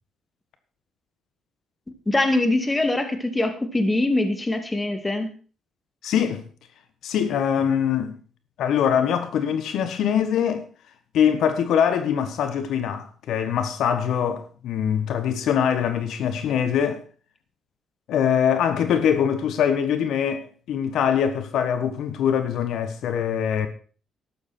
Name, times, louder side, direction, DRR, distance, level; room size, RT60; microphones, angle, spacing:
voice 1, 2.1-5.3, left 2 dB, 15° left, 2.4 m, -23 dB
voice 2, 6.0-6.4 7.0-8.2 8.6-10.6 11.1-17.0 18.1-23.7, left 8 dB, 75° left, 1.4 m, -23 dB
12.5 x 11.0 x 4.5 m
cardioid pair, 90°, 0 cm